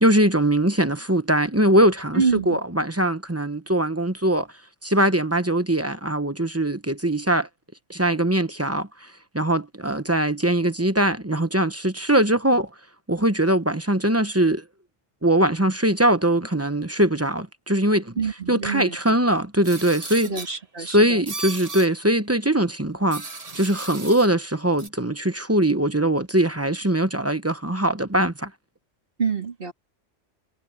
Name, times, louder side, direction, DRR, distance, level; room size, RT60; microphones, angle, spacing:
voice 1, 0.0-4.5 4.8-7.5 7.9-9.1 9.3-12.7 13.1-14.6 15.2-18.1 18.5-20.3 20.9-23.3 23.5-28.5, right 1 dB, 15° right, 0.8 m, -21 dB
voice 2, 2.1-2.6 18.2-19.2 20.2-21.2 29.2-29.7, right 5 dB, 45° right, 2.8 m, -26 dB
sound 1, 19.6-20.5 21.3-21.9 23.1-24.3 24.8-24.9, right 3 dB, 30° right, 1.5 m, -35 dB
omnidirectional pair, 1.3 m